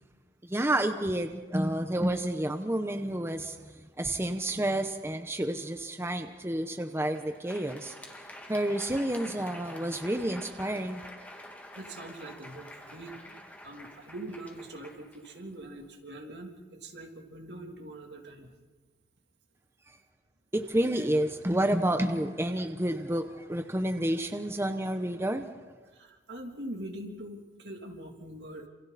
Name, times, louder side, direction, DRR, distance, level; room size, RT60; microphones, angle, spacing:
voice 1, 0.4-7.9 8.5-11.0 20.5-25.4, right 1 dB, 15° right, 7 dB, 0.9 m, -30 dB
Crowd, 6.9-15.9, left 1 dB, 10° left, 2.3 m, -48 dB
voice 2, 11.7-18.6 25.9-28.7, right 1 dB, 75° right, 2 dB, 3.2 m, -43 dB
28.0 x 27.5 x 4.2 m, 1.3 s
head